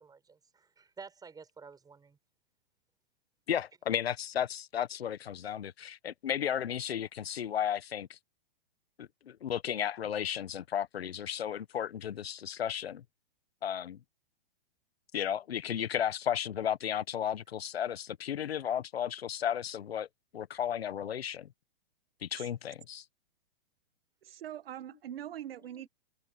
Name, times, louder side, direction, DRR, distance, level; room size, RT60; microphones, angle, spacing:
voice 1, 0.0-2.2, right 5 dB, 10° right, 5.5 m, -51 dB
voice 2, 3.5-8.2 9.0-13.0 13.6-14.0 15.1-20.1 20.3-21.5 22.2-23.0, left 9 dB, 80° left, 1.2 m, -34 dB
voice 3, 24.2-25.9, right 11 dB, 70° right, 1.2 m, -43 dB
hypercardioid pair, 130°, 30 cm